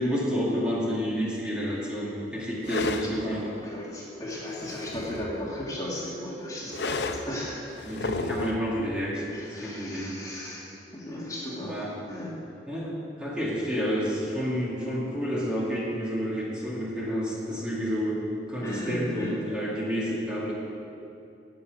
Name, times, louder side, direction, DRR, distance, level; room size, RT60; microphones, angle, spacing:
voice 1, 0.0-3.4 7.8-10.2 11.6-11.9 12.7-18.2 18.5-20.5, equal, 5° right, -6 dB, 2.2 m, -29 dB
sound 1, 2.6-3.1 4.3-5.5 6.7-7.3 7.8-8.6, left 3 dB, 80° left, 0.7 m, -32 dB
voice 2, 3.2-7.6 9.3-12.4 18.6-19.4, left 1 dB, 20° left, -5 dB, 2.2 m, -36 dB
12.0 x 7.7 x 9.1 m, 2.8 s
head